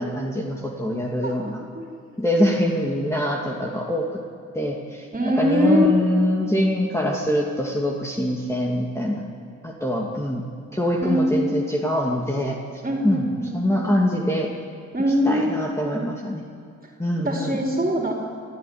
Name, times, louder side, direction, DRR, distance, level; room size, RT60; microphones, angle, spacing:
voice 1, 0.0-1.6 2.2-4.2 4.5-5.1 5.4-9.3 9.6-12.6 13.0-14.5 15.2-16.4 17.0-17.6, left 1 dB, 10° left, -2 dB, 2.4 m, -24 dB
voice 2, 1.2-1.8 5.1-5.9 11.0-11.7 12.8-13.9 14.9-15.7 17.2-18.1, equal, 30° right, 0 dB, 4.1 m, -23 dB
24.0 x 13.0 x 9.6 m, 2.4 s
cardioid pair, 70°, 30 cm